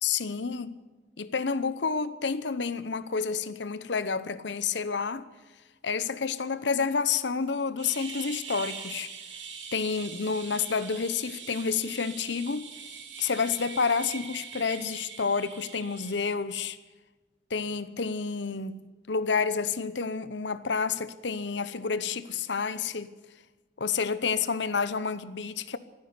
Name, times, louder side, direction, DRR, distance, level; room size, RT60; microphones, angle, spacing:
voice 1, 0.0-0.8 1.2-5.3 5.8-9.1 9.7-12.7 13.2-16.8 17.5-18.8 19.1-23.1 23.8-25.8, left 5 dB, 75° left, 0.9 m, -29 dB
sound 1, 7.8-16.1, right 6 dB, 90° right, 2.4 m, -42 dB
15.0 x 9.7 x 9.7 m
head